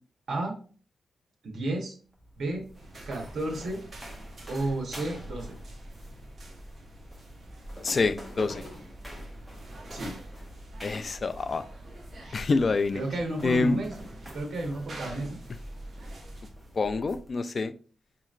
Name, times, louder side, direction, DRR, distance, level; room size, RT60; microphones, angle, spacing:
voice 1, 1.4-2.0 2.4-2.7 3.0-3.8 4.5-5.5 9.9-10.2 12.9-13.9 14.3-15.4, right 2 dB, 70° right, 1.0 m, -32 dB
sound 1, 2.0-17.3, equal, 5° right, 1.0 m, -46 dB
sound 2, 2.7-16.5, right 1 dB, 45° right, 0.9 m, -48 dB
voice 2, 7.8-8.6 10.8-11.6 12.3-13.0 13.4-13.8 16.7-17.7, left 3 dB, 40° left, 0.3 m, -26 dB
sound 3, 7.9-12.3 13.0-13.1 13.3-13.5 14.1-14.2, equal, 20° left, 1.8 m, -47 dB
5.1 x 3.0 x 2.5 m
wide cardioid pair, 115°, 0 cm